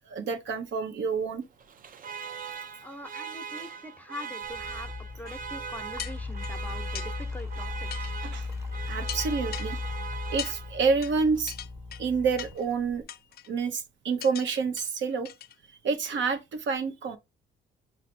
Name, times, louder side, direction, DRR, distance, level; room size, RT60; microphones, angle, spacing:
voice 1, 0.1-1.4 8.2-8.5 8.9-9.8 10.3-11.5 12.0-13.0 13.5-15.3 15.8-17.2, right 5 dB, 70° right, 0.9 m, -28 dB
Alarm, 1.6-11.0, right 6 dB, 45° right, 0.5 m, -40 dB
voice 2, 2.8-8.1, left 1 dB, 10° left, 0.9 m, -43 dB
sound 1, 4.4-13.0, left 3 dB, 15° right, 1.1 m, -37 dB
sound 2, 5.3-5.4 6.0-6.5 6.9-7.1 7.9-8.1 8.5-8.6 9.1-9.7 10.4-10.5 11.0-11.1 11.5-12.0 12.4-12.7 13.1-13.5 14.2-14.5 14.8-14.9 15.2-15.5 15.9-16.0, left 10 dB, 50° left, 0.4 m, -39 dB
5.0 x 2.2 x 4.3 m
cardioid pair, 90°, 20 cm